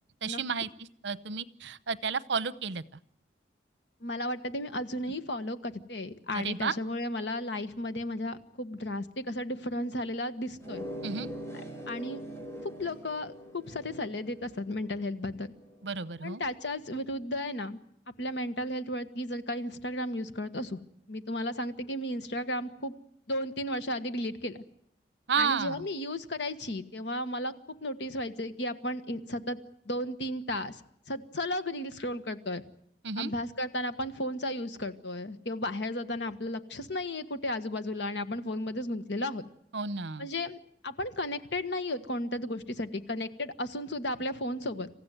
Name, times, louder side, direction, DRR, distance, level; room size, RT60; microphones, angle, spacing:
voice 1, 0.2-2.8 6.3-6.7 11.0-11.3 15.8-16.4 25.3-25.9 33.0-33.3 39.7-40.3, right 5 dB, 75° right, 15 dB, 0.9 m, -32 dB
voice 2, 4.0-10.8 11.9-12.2 12.6-15.5 16.2-17.8 18.2-20.8 21.1-22.9 23.3-24.6 25.4-29.6 29.9-30.8 31.1-32.6 33.2-39.4 40.2-40.6 40.8-44.9, left 1 dB, 70° left, 10 dB, 1.5 m, -34 dB
sound 1, 10.6-15.9, equal, 15° left, 4.9 m, -43 dB
27.0 x 15.0 x 9.3 m, 0.73 s
head